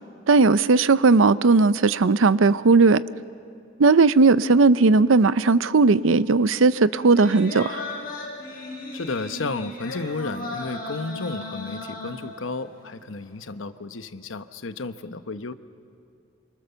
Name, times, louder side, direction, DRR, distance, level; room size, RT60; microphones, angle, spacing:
voice 1, 0.3-3.0 3.8-7.8, right 3 dB, 80° right, 16 dB, 0.6 m, -17 dB
sound 1, 7.0-12.6 13.0-13.1, left 2 dB, 45° left, 5.8 m, -35 dB
voice 2, 8.9-15.5, left 3 dB, 75° left, 11 dB, 0.9 m, -32 dB
27.0 x 25.0 x 7.0 m, 2.4 s
head